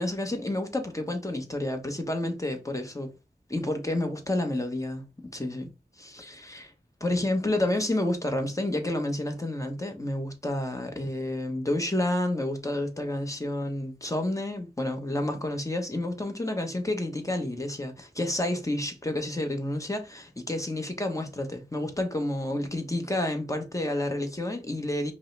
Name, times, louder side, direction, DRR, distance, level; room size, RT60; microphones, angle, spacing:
voice 1, 0.0-3.1 3.5-5.0 5.3-5.7 6.0-6.7 7.0-25.1, left 1 dB, 20° left, 1.0 m, -30 dB
5.2 x 2.1 x 3.3 m
wide cardioid pair, 50°, 18 cm